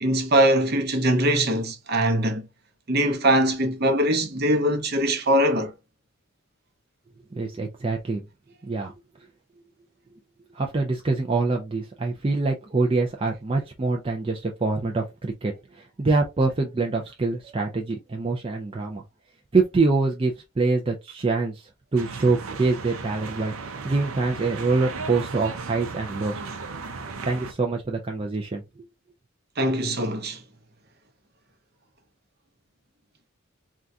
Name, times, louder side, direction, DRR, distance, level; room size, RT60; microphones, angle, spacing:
voice 1, 0.0-2.5 2.9-5.7 29.6-30.4, right 1 dB, 50° right, 0.7 m, -22 dB
voice 2, 7.3-8.2 8.6-8.9 10.5-19.0 19.5-23.5 23.8-26.4 26.9-28.6, right 3 dB, 25° right, 0.4 m, -25 dB
sound 1, 22.0-27.5, right 4 dB, 85° right, 0.6 m, -35 dB
3.7 x 2.3 x 2.6 m
head